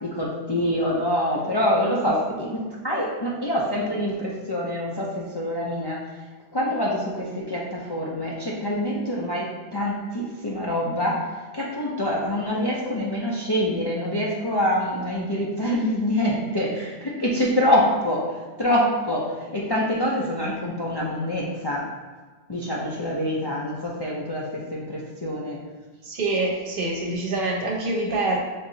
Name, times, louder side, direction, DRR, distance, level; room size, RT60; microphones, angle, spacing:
voice 1, 0.0-6.0 6.5-11.2 11.5-18.3 18.6-21.8 22.5-25.6, left 1 dB, 35° left, -5 dB, 0.4 m, -25 dB
voice 2, 26.0-28.4, right 2 dB, 60° right, -1 dB, 0.9 m, -25 dB
3.5 x 2.6 x 3.9 m, 1.3 s
omnidirectional pair, 1.0 m